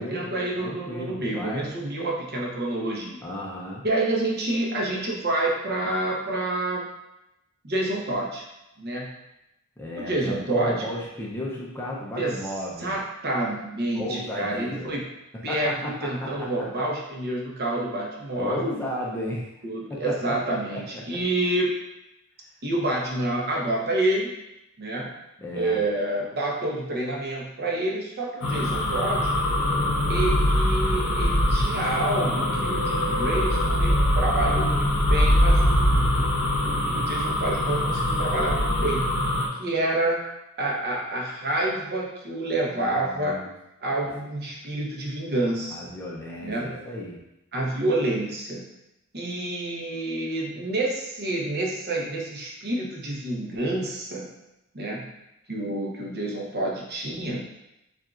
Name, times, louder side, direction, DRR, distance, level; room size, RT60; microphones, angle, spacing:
voice 1, 0.0-3.2 3.8-6.9 7.6-8.4 8.8-9.1 9.9-10.9 12.1-12.4 12.8-15.1 15.4-18.7 19.6-21.7 22.6-24.4 24.8-25.1 25.5-29.4 30.1-39.1 39.6-40.2 40.6-45.9 46.4-46.9 47.5-48.6 49.1-54.3 54.7-55.1 55.5-57.4, right 1 dB, 45° right, -2 dB, 0.9 m, -28 dB
voice 2, 0.6-1.7 3.2-3.8 9.8-13.0 13.9-14.9 15.5-16.5 18.3-19.5 19.9-20.8 21.1-21.2 25.4-25.8 42.6-43.5 45.7-47.2, left 1 dB, 10° left, -4 dB, 0.6 m, -34 dB
sound 1, 28.4-39.5, left 1 dB, 70° left, 0.9 m, -23 dB
7.1 x 2.5 x 2.5 m, 0.89 s
head